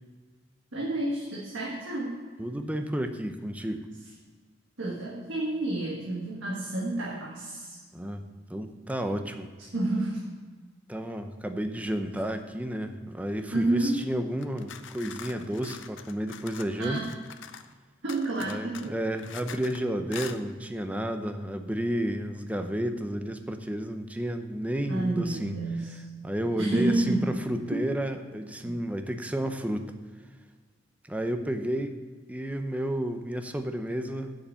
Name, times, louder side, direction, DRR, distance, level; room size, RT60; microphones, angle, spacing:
voice 1, 0.7-2.3 4.8-7.8 9.7-10.2 13.5-14.0 16.8-17.1 18.0-19.0 24.9-26.0 26.6-27.4 27.7-27.9, right 2 dB, 80° right, -5 dB, 1.7 m, -30 dB
voice 2, 2.4-3.9 7.9-8.2 8.5-9.5 10.9-17.0 18.4-25.5 26.2-29.9 31.0-32.0 32.3-34.3, right 1 dB, 10° right, 7 dB, 0.6 m, -31 dB
sound 1, 14.4-17.7 18.1-19.8 20.1-20.4, left 8 dB, 75° left, 0.6 m, -44 dB
7.9 x 7.1 x 6.9 m, 1.5 s
head